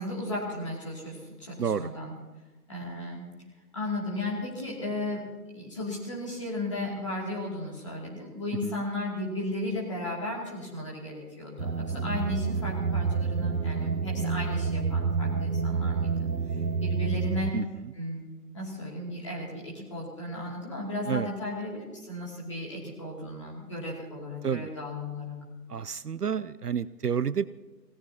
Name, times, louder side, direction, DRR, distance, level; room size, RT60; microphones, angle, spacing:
voice 1, 0.0-2.1 2.7-3.3 3.7-5.2 5.5-16.1 16.8-17.5 17.9-18.2 18.5-25.4, left 1 dB, 20° left, -4 dB, 2.5 m, -35 dB
voice 2, 1.6-1.9 8.6-8.8 17.5-17.9 21.1-21.3 24.4-24.7 25.7-27.5, right 7 dB, 70° right, 16 dB, 0.6 m, -30 dB
sound 1, 11.6-17.5, right 5 dB, 85° right, 1.2 m, -28 dB
27.5 x 17.5 x 2.8 m, 1.2 s
figure-of-eight pair, 170°, 50 cm